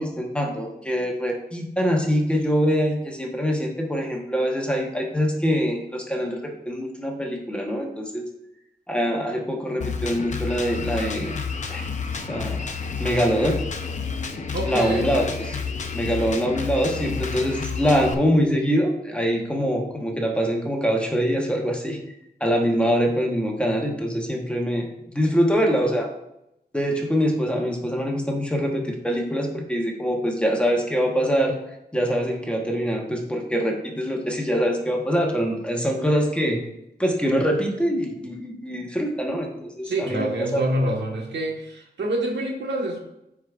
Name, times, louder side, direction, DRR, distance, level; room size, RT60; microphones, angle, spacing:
voice 1, 0.0-6.4 6.6-8.2 8.9-11.4 11.7-11.9 12.3-12.7 13.0-13.6 14.6-15.6 15.9-22.0 22.4-26.1 26.7-31.6 31.9-36.6 37.0-40.6, equal, 5° left, 0 dB, 1.0 m, -24 dB
Drum kit, 9.8-18.1, left 5 dB, 45° left, 0.7 m, -30 dB
voice 2, 14.5-15.3 39.8-43.0, right 1 dB, 90° right, 1 dB, 1.4 m, -26 dB
14.0 x 4.7 x 2.4 m, 0.84 s
wide cardioid pair, 165°, 17 cm